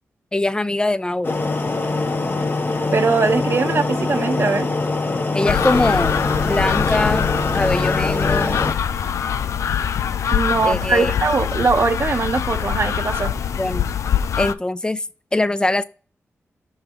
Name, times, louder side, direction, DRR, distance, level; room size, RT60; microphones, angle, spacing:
voice 1, 0.3-1.4 5.3-6.2 6.4-7.3 7.5-8.6 10.6-11.1 13.6-13.9 14.4-15.0 15.3-15.8, left 2 dB, 15° left, 0.5 m, -22 dB
sound 1, 1.2-8.7, left 3 dB, 45° left, 1.1 m, -23 dB
voice 2, 2.9-4.7 10.3-13.3, right 4 dB, 50° right, 0.8 m, -21 dB
sound 2, 5.5-14.5, left 8 dB, 85° left, 0.4 m, -23 dB
6.7 x 5.7 x 3.0 m
cardioid pair, 70°, 5 cm